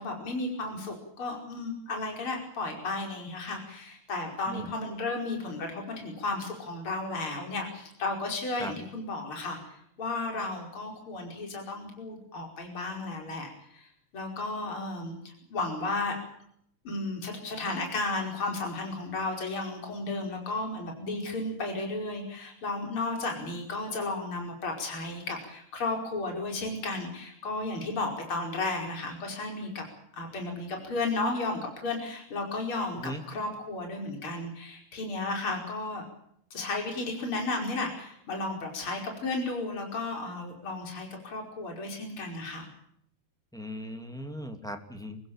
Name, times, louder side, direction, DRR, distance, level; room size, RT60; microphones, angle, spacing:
voice 1, 0.0-16.2 16.8-29.8 30.1-36.0 36.5-42.7, left 2 dB, 40° left, 2 dB, 5.8 m, -34 dB
voice 2, 43.5-45.2, equal, ahead, 4 dB, 2.3 m, -38 dB
27.5 x 16.0 x 9.0 m, 0.71 s
omnidirectional pair, 3.6 m